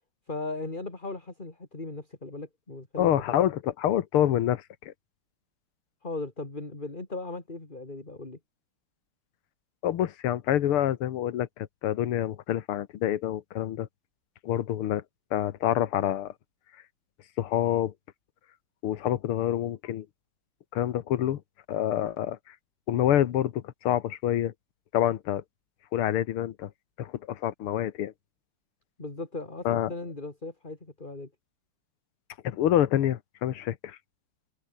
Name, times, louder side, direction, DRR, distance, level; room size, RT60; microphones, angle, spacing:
voice 1, 0.3-3.4 6.0-8.4 29.0-31.3, left 3 dB, 20° left, 3.4 m, -37 dB
voice 2, 3.0-4.9 9.8-13.9 14.4-15.0 15.3-16.3 17.4-17.9 18.8-20.1 20.7-21.4 21.7-22.4 22.9-24.5 24.9-25.4 25.9-26.7 27.0-28.1 29.7-29.9 32.4-34.0, left 11 dB, 85° left, 2.0 m, -27 dB
omnidirectional pair, 2.4 m